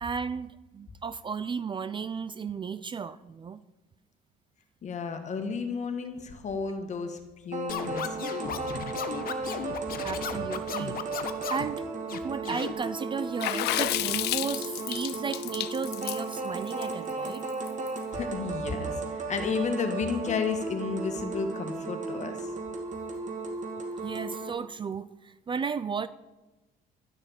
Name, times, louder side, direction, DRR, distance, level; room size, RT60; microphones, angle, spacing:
voice 1, 0.0-3.6 10.0-11.0 11.5-11.8 12.1-17.5 24.0-26.1, right 6 dB, 30° right, 15 dB, 0.4 m, -34 dB
voice 2, 4.8-8.8 18.1-22.5, left 5 dB, 45° left, 6 dB, 1.9 m, -32 dB
sound 1, 7.5-24.5, right 3 dB, 45° right, 2.2 m, -35 dB
Scratching (performance technique), 7.7-11.7 12.1-12.7, left 9 dB, 60° left, 1.1 m, -36 dB
Water / Splash splatter, 13.4-17.9, left 17 dB, 80° left, 0.5 m, -31 dB
12.5 x 6.5 x 8.9 m, 1.1 s
cardioid pair, 110°, 17 cm